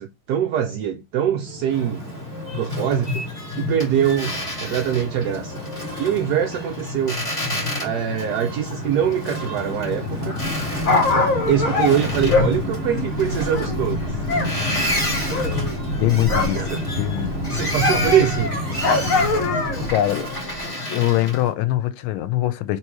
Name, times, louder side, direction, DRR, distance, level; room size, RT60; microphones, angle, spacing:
voice 1, 0.0-2.1 2.5-3.2 3.5-4.3 4.6-5.5 6.0-7.3 7.8-10.4 11.5-14.3 15.6-15.8 16.5-16.8 17.5-18.6, right 9 dB, 80° right, 0.9 m, -23 dB
sound 1, 1.5-19.9, left 1 dB, 45° right, 0.8 m, -31 dB
Boat Water vehicle, 1.7-21.5, left 2 dB, 15° left, 1.8 m, -30 dB
Dog, 10.5-14.5 14.8-16.7 17.0-19.9 20.6-20.7, left 3 dB, 55° left, 1.0 m, -23 dB
voice 2, 16.0-16.6 17.0-17.3 19.9-20.3 20.9-22.8, left 14 dB, 90° left, 1.4 m, -22 dB
3.1 x 3.0 x 4.6 m
omnidirectional pair, 2.2 m